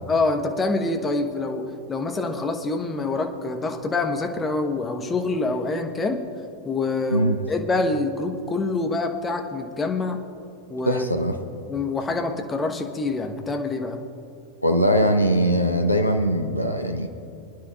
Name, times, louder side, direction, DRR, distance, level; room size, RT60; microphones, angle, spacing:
voice 1, 0.1-6.2 6.6-10.2 10.7-11.0 11.7-14.0, left 3 dB, 15° left, 4 dB, 1.1 m, -26 dB
voice 2, 7.1-7.5 10.9-11.4 14.6-17.1, equal, 90° left, 5 dB, 0.7 m, -21 dB
26.0 x 10.0 x 2.4 m, 2.9 s
figure-of-eight pair, 90°, 0 cm